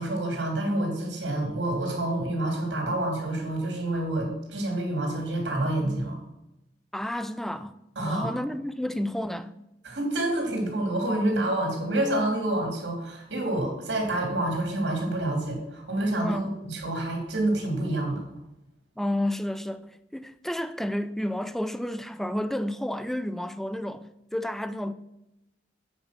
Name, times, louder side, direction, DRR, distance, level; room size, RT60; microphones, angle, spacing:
voice 1, 0.0-6.2 7.9-8.3 9.8-18.2, right 1 dB, 85° right, 3.1 m, -28 dB
voice 2, 6.9-7.8 8.1-9.6 16.2-16.4 19.0-24.9, left 1 dB, ahead, 0.4 m, -31 dB
8.8 x 5.3 x 6.0 m
head